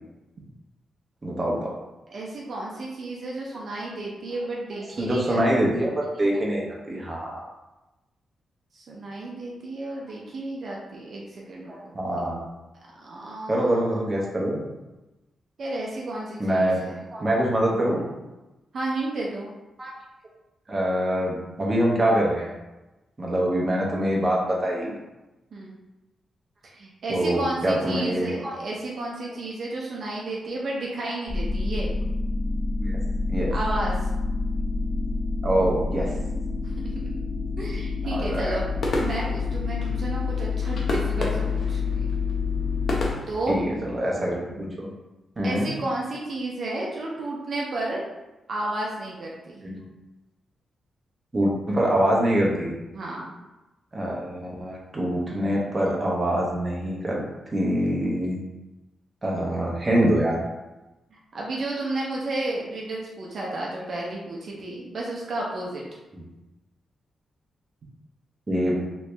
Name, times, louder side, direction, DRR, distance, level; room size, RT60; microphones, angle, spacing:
voice 1, 1.2-1.7 5.0-7.4 11.7-12.5 13.5-14.7 16.4-16.8 17.1-18.0 19.8-19.9 20.7-22.5 23.2-24.9 27.1-28.5 32.8-33.0 33.3-33.5 35.4-36.1 38.1-38.6 43.5-44.9 45.4-45.7 49.6-49.8 51.3-52.7 53.9-57.2 57.5-58.4 59.2-60.4 66.1-66.2 68.5-68.8, right 1 dB, 20° right, -3 dB, 0.8 m, -24 dB
voice 2, 2.1-5.4 8.7-11.9 12.8-14.0 15.6-17.0 18.7-19.5 25.5-25.7 26.7-31.9 33.5-34.1 36.6-37.1 37.6-38.6 39.0-42.1 43.3-43.6 45.4-48.0 48.5-49.6 52.9-53.3 61.3-65.8, right 2 dB, 50° right, -3 dB, 0.5 m, -32 dB
sound 1, 31.3-43.1, left 4 dB, 20° left, 0.3 m, -28 dB
sound 2, 38.2-43.9, left 1 dB, 55° left, 0.6 m, -33 dB
3.0 x 2.7 x 3.3 m, 1.0 s
wide cardioid pair, 135°, 0 cm